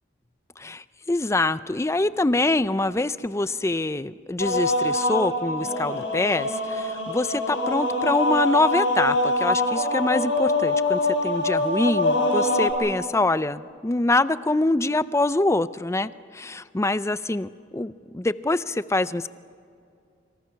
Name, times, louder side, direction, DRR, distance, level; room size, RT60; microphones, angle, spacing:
voice 1, 0.6-19.3, left 2 dB, 15° left, 15 dB, 0.5 m, -25 dB
sound 1, 4.4-12.7, left 2 dB, 80° left, 6.5 m, -24 dB
27.0 x 26.5 x 5.8 m, 2.4 s
head